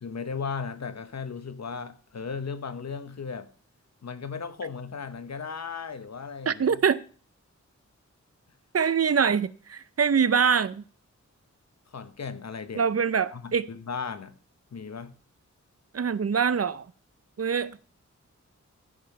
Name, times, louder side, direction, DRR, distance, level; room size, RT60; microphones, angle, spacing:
voice 1, 0.0-3.5 4.0-6.8 11.9-12.8 13.3-14.3 14.7-15.1, left 5 dB, 60° left, 1.1 m, -36 dB
voice 2, 6.5-7.0 8.7-10.8 12.8-13.7 15.9-16.8 17.4-17.8, right 6 dB, 55° right, 0.6 m, -24 dB
14.0 x 5.5 x 6.6 m
wide cardioid pair, 100°, 30 cm